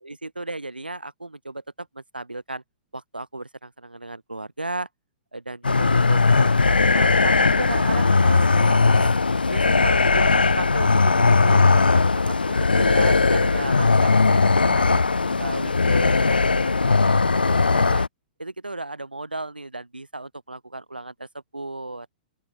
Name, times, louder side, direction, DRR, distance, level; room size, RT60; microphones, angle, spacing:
voice 1, 0.0-2.6 2.9-4.9 5.3-9.1 9.5-15.0 15.4-18.1 18.4-21.3 21.5-22.1, right 2 dB, 85° right, 2.9 m, -34 dB
sound 1, 5.6-18.1, left 4 dB, 80° left, 0.3 m, -19 dB
open air
figure-of-eight pair, 110°, 5 cm